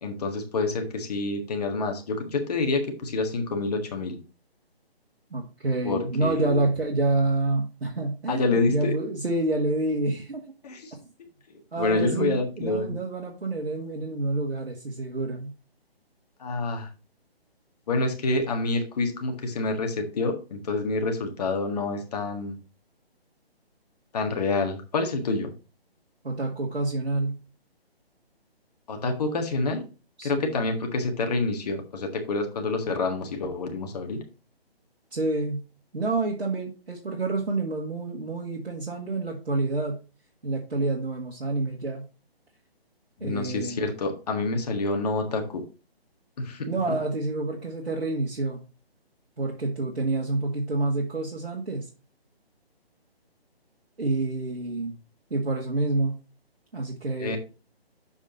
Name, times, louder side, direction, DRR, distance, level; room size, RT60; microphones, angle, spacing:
voice 1, 0.0-4.2 5.8-6.6 8.3-8.9 10.6-10.9 11.5-13.0 16.4-16.9 17.9-22.6 24.1-25.5 28.9-29.8 30.2-34.2 43.2-45.6 46.4-47.0 57.2-57.4, left 3 dB, 40° left, 4 dB, 1.6 m, -27 dB
voice 2, 5.3-10.4 11.7-15.5 26.2-27.4 30.2-30.5 35.1-35.6 35.9-40.0 40.4-42.0 43.2-43.8 46.7-48.6 49.4-51.9 54.0-54.9 55.3-56.2 56.7-57.4, right 2 dB, 85° right, -1 dB, 1.8 m, -28 dB
7.1 x 5.3 x 4.1 m, 0.32 s
figure-of-eight pair, 155°, 31 cm